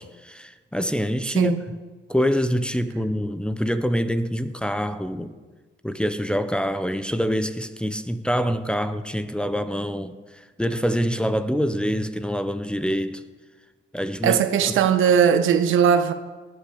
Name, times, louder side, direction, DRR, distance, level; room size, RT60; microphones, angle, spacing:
voice 1, 0.0-1.5 2.1-5.3 5.8-13.2 13.9-14.4, equal, 5° left, 0.9 m, -25 dB
voice 2, 14.2-16.1, right 8 dB, 80° right, 1.3 m, -19 dB
19.0 x 8.4 x 7.0 m
cardioid pair, 90°, 20 cm